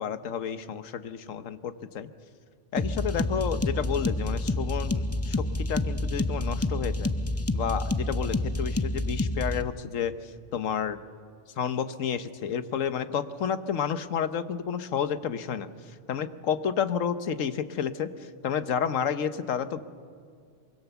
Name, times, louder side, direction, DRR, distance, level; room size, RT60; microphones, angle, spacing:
voice 1, 0.0-2.1 2.7-7.1 7.5-11.0 11.6-15.7 16.1-19.8, left 7 dB, 85° left, 12 dB, 1.3 m, -30 dB
sound 1, 2.8-9.6, left 2 dB, 25° left, 0.3 m, -28 dB
24.0 x 24.0 x 7.0 m, 2.2 s
omnidirectional pair, 1.3 m